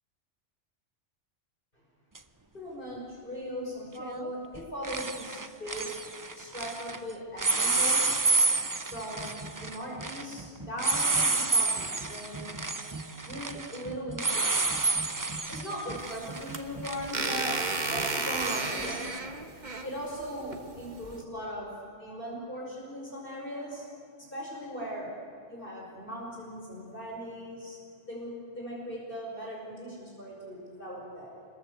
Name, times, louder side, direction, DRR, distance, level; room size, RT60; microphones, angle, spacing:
sound 1, 2.1-2.2 4.0-4.3 4.5-7.0 7.4-19.2, right 3 dB, 20° right, 0.7 m, -30 dB
voice 1, 2.5-5.9 6.4-8.1 8.9-12.5 13.2-14.7 15.5-17.6 17.9-19.0 19.8-21.7 22.0-23.9 24.3-25.1 25.5-27.8 28.0-31.4, equal, 45° left, -3 dB, 5.9 m, -39 dB
sound 2, 16.0-21.2, right 3 dB, 40° right, 1.5 m, -34 dB
26.5 x 21.5 x 8.1 m, 2.4 s
omnidirectional pair, 1.3 m